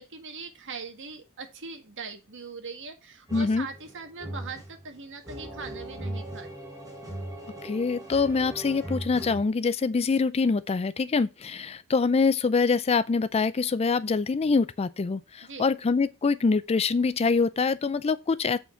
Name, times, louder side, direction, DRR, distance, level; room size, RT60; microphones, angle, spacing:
voice 1, 0.0-6.6 15.4-15.7, right 4 dB, 60° right, 1.7 m, -41 dB
voice 2, 3.3-3.7 7.6-18.6, left 4 dB, 30° left, 0.4 m, -25 dB
sound 1, 3.3-9.4, right 1 dB, 15° right, 5.3 m, -39 dB
8.3 x 4.4 x 5.7 m
head